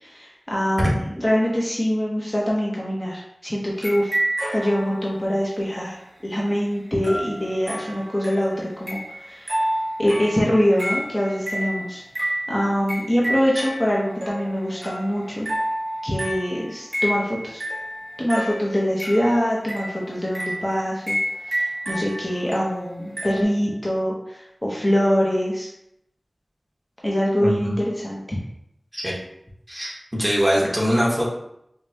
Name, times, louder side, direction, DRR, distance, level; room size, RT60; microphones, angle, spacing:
voice 1, 0.0-4.1 4.5-5.9 6.2-9.6 10.0-15.5 16.0-17.6 18.2-21.2 21.5-25.7 27.0-28.2, equal, 25° left, -4 dB, 0.7 m, -24 dB
sound 1, 3.8-5.4 7.0-23.4, equal, 60° right, 0.9 m, -30 dB
voice 2, 27.4-27.7 28.9-29.1 29.7-31.2, equal, 20° right, -6 dB, 1.3 m, -22 dB
5.1 x 2.2 x 2.8 m, 0.78 s
wide cardioid pair, 60°, 0 cm